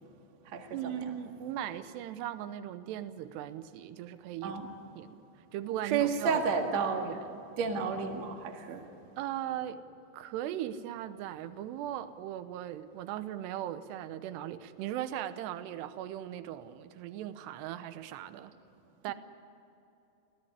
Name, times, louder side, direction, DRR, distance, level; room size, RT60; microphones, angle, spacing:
voice 1, 0.7-4.6 5.0-5.2 5.5-6.4 7.0-7.4 9.2-9.8 10.1-18.5 19.0-19.1, right 11 dB, 85° right, 12 dB, 3.0 m, -38 dB
voice 2, 5.8-7.1 7.6-8.8, right 5 dB, 50° right, 3 dB, 2.6 m, -30 dB
26.0 x 17.0 x 9.8 m, 2.8 s
omnidirectional pair, 4.8 m